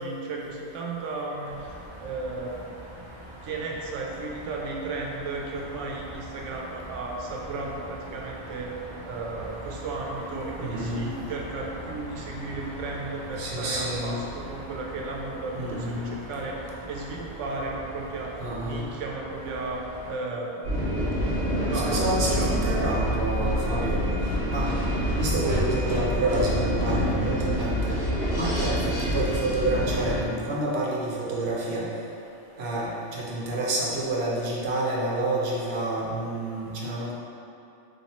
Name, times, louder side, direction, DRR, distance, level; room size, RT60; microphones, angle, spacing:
voice 1, 0.0-1.7 2.0-2.5 3.0-8.7 9.0-16.6 16.9-18.3 18.6-19.8 20.1-20.5 21.6-22.6 23.8-23.9, right 3 dB, 90° right, -1 dB, 1.0 m, -34 dB
sound 1, 1.4-20.1, right 1 dB, 45° right, 0.3 m, -42 dB
voice 2, 10.6-11.1 13.4-14.2 15.5-16.1 18.4-18.8 21.7-24.1 24.5-24.7 25.2-28.0 28.3-31.9 32.6-37.1, right 2 dB, 65° right, -4 dB, 0.9 m, -28 dB
sound 2, 20.6-30.2, equal, 60° left, 1.6 m, -26 dB
4.1 x 3.3 x 2.9 m, 2.7 s
omnidirectional pair, 1.2 m